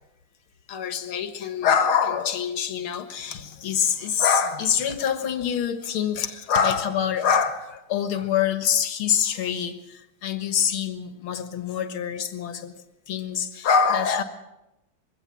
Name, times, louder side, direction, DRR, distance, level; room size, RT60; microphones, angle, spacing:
voice 1, 0.7-12.7 13.1-14.2, left 7 dB, 85° left, 10 dB, 2.3 m, -25 dB
22.0 x 17.0 x 7.5 m, 0.90 s
omnidirectional pair, 2.3 m